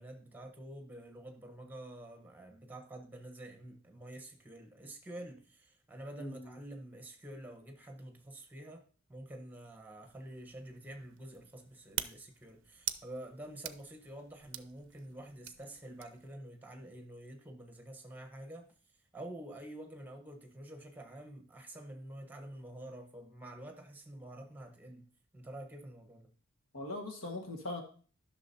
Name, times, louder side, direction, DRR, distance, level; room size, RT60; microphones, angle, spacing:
voice 1, 0.0-8.8 9.1-26.3, right 1 dB, 10° right, 1.1 m, -48 dB
voice 2, 6.2-6.5 26.7-27.8, left 2 dB, 80° left, 1.6 m, -40 dB
sound 1, 10.0-16.3, right 13 dB, 60° right, 0.5 m, -45 dB
11.5 x 6.2 x 2.8 m
head